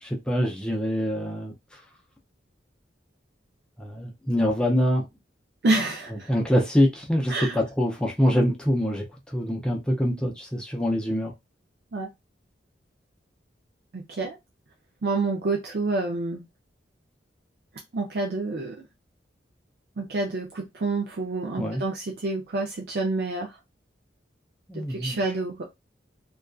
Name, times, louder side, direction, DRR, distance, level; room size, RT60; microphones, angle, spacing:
voice 1, 0.0-1.5 3.8-5.0 6.3-11.3 21.6-21.8 24.7-25.2, equal, 5° left, 0.5 m, -25 dB
voice 2, 5.6-6.3 7.3-7.6 11.9-12.1 13.9-14.4 15.0-16.4 17.9-18.9 20.0-23.6 24.7-25.6, right 3 dB, 60° right, 0.4 m, -28 dB
2.5 x 2.3 x 2.3 m
head